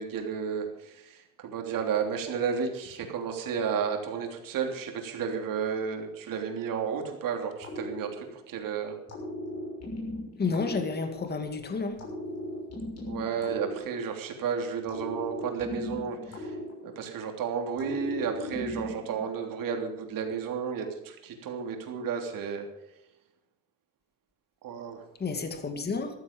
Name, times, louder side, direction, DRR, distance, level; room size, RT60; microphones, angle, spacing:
voice 1, 0.0-9.0 13.0-16.5 16.8-22.7 24.6-25.0, right 6 dB, 70° right, 3 dB, 3.3 m, -32 dB
sound 1, 7.6-8.6 9.1-11.5 12.0-14.4 14.9-17.3 17.8-19.3, left 1 dB, 45° left, 6.5 m, -38 dB
voice 2, 10.4-12.0 25.2-26.1, left 4 dB, 30° left, 6 dB, 2.1 m, -30 dB
14.0 x 13.5 x 5.4 m, 0.88 s
cardioid pair, 135°, 34 cm